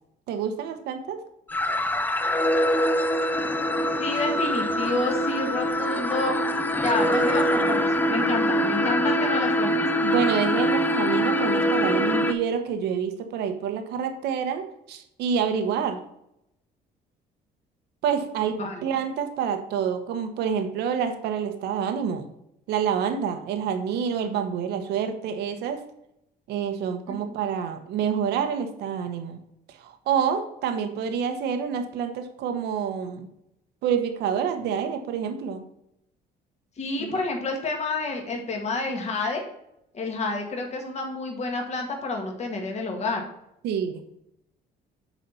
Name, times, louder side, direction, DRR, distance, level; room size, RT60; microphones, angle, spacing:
voice 1, 0.3-1.2 10.0-16.0 18.0-22.3 22.7-25.9 26.5-29.4 29.8-33.3 33.8-35.6 37.0-37.2 43.6-44.0, right 7 dB, 80° right, 6 dB, 1.0 m, -27 dB
sound 1, 1.5-12.3, equal, 10° left, 0.6 m, -24 dB
voice 2, 4.0-6.4 6.8-9.9 18.6-18.8 27.1-27.2 36.8-39.4 39.9-43.2, left 2 dB, 40° left, 2 dB, 1.8 m, -29 dB
7.1 x 4.2 x 5.6 m, 0.79 s
cardioid pair, 110°, 17 cm